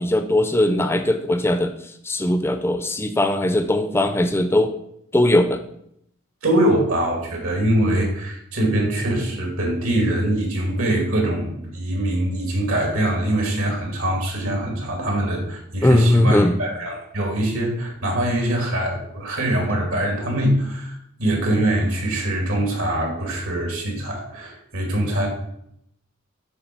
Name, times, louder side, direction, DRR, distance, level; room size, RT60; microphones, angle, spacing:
voice 1, 0.0-4.8 5.1-5.6 15.8-16.5, left 1 dB, 10° left, 8 dB, 0.4 m, -19 dB
voice 2, 6.4-25.3, right 1 dB, 85° right, 0 dB, 2.3 m, -23 dB
8.0 x 3.5 x 5.9 m, 0.74 s
head